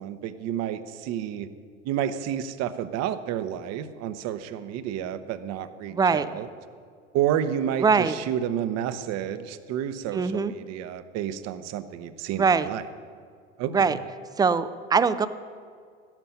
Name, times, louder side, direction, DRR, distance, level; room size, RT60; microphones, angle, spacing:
voice 1, 0.0-1.5 1.8-6.5 7.1-12.8 13.6-14.0, right 10 dB, 45° right, 12 dB, 1.0 m, -30 dB
voice 2, 5.9-6.3 7.8-8.2 10.1-10.5 12.3-12.7 13.7-14.0 14.4-15.3, right 5 dB, 10° right, 14 dB, 0.5 m, -22 dB
14.0 x 10.5 x 5.6 m, 2.1 s
hypercardioid pair, 85°, 36 cm